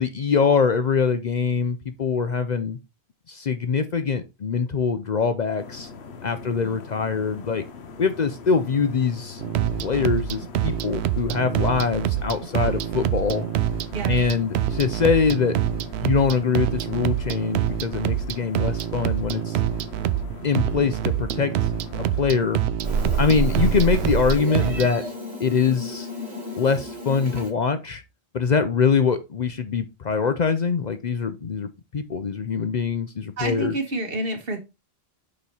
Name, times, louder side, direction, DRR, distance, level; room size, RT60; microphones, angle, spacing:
voice 1, 0.0-2.8 3.3-5.9 6.2-7.6 8.0-9.4 9.8-13.4 14.1-15.5 16.0-19.6 20.4-21.5 22.2-22.6 23.2-25.0 25.4-26.1 26.6-28.0 28.3-33.7, left 5 dB, 50° left, 0.6 m, -23 dB
sound 1, 5.6-22.7, left 5 dB, 90° left, 1.1 m, -41 dB
voice 2, 6.4-6.9 13.9-14.4 33.4-34.6, right 2 dB, 65° right, 1.8 m, -30 dB
sound 2, 9.4-24.9, right 11 dB, 85° right, 0.8 m, -26 dB
Meow, 22.8-27.5, right 3 dB, 30° right, 2.2 m, -28 dB
6.7 x 3.1 x 5.5 m
omnidirectional pair, 1.1 m